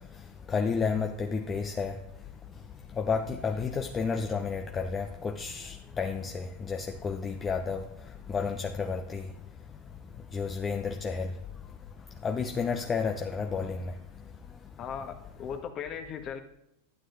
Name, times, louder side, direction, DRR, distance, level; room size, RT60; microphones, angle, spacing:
voice 1, 0.5-2.0 3.0-7.8 8.3-9.3 10.3-11.3 12.2-13.9, left 5 dB, 20° left, 0.8 m, -31 dB
voice 2, 14.8-16.4, left 7 dB, 35° left, 1.6 m, -37 dB
12.0 x 9.1 x 4.0 m
hypercardioid pair, 115°, 0 cm